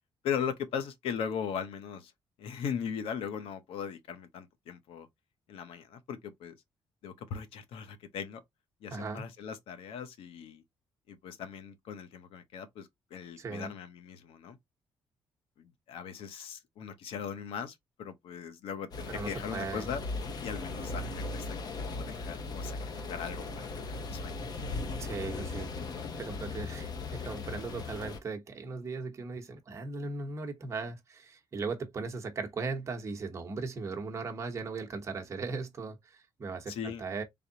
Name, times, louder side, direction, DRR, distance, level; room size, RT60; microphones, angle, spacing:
voice 1, 0.2-2.1 2.4-5.1 5.5-6.6 7.0-8.4 8.8-10.6 11.1-14.6 15.6-20.0 20.4-22.8 23.1-24.4 36.7-37.0, left 7 dB, 85° left, 0.8 m, -39 dB
voice 2, 8.9-9.2 13.4-13.7 19.1-19.9 25.0-25.7 26.2-37.2, right 4 dB, 30° right, 0.9 m, -38 dB
sound 1, 18.9-28.2, left 3 dB, 45° left, 0.8 m, -38 dB
3.5 x 3.5 x 2.7 m
cardioid pair, 140°, 9 cm